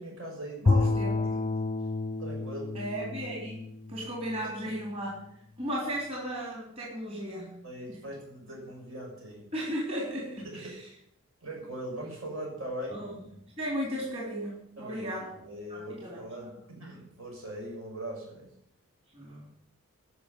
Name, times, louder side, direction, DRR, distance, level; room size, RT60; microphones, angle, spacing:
voice 1, 0.0-1.6 2.2-2.8 4.4-4.8 7.6-9.5 10.4-10.8 11.4-13.0 14.8-15.1 15.4-18.5, right 1 dB, 70° right, -2 dB, 6.5 m, -41 dB
voice 2, 0.6-1.3 2.7-5.2 5.6-7.6 7.9-8.0 9.5-10.9 12.9-13.1 13.6-15.3 15.7-16.2 19.1-19.5, equal, 25° right, -4 dB, 3.5 m, -35 dB
Bowed string instrument, 0.7-4.9, left 3 dB, 25° left, 0.4 m, -30 dB
12.0 x 6.6 x 9.3 m, 0.75 s
head